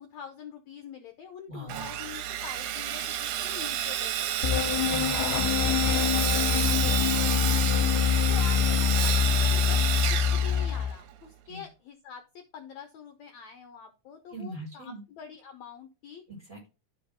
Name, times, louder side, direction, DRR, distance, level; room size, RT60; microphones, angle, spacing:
voice 1, 0.0-4.4 5.4-7.9 8.3-9.9 10.1-16.2, left 6 dB, 70° left, 6 dB, 1.9 m, -45 dB
voice 2, 1.5-1.8 4.9-5.8 11.4-11.6 14.3-15.0 16.3-16.7, equal, 10° right, -2 dB, 4.6 m, -41 dB
Sawing, 1.7-11.2, right 11 dB, 75° right, 2.1 m, -30 dB
sound 1, 4.4-11.0, left 9 dB, 85° left, 2.2 m, -25 dB
12.5 x 4.8 x 3.7 m, 0.31 s
omnidirectional pair, 3.8 m